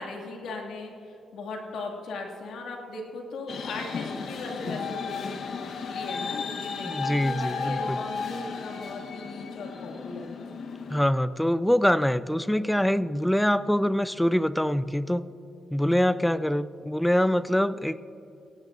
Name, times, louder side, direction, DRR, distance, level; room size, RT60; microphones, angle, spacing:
voice 1, 0.0-10.4, left 3 dB, 80° left, 1 dB, 2.1 m, -38 dB
sound 1, 3.5-11.1, left 5 dB, 65° left, 1.0 m, -34 dB
voice 2, 6.8-8.0 10.9-15.3 15.7-18.0, equal, 5° left, 15 dB, 0.4 m, -24 dB
17.5 x 16.0 x 2.5 m, 2.7 s
cardioid pair, 95°, 0 cm